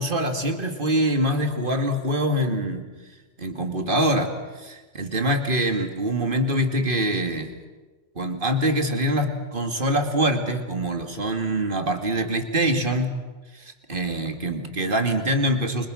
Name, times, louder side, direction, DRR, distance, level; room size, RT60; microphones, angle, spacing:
voice 1, 0.0-2.9 3.4-7.5 8.2-13.1 13.5-15.9, right 1 dB, 40° right, 6 dB, 2.7 m, -24 dB
29.0 x 25.0 x 6.5 m, 1.3 s
omnidirectional pair, 1.4 m